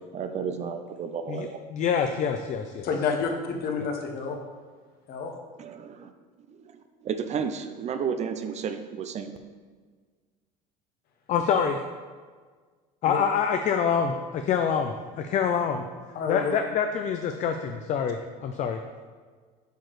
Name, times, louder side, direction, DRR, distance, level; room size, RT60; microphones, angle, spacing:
voice 1, 0.1-1.6 5.6-6.1 6.5-9.4, right 6 dB, 35° right, 8 dB, 0.5 m, -32 dB
voice 2, 1.3-2.9 11.3-11.8 13.0-15.8 16.3-18.8, left 7 dB, 40° left, 6 dB, 0.4 m, -26 dB
voice 3, 2.8-4.4 5.1-5.3 13.1-13.2 16.1-16.5, left 5 dB, 55° left, 3 dB, 1.0 m, -29 dB
8.0 x 4.7 x 3.1 m, 1.5 s
supercardioid pair, 105°, 19 cm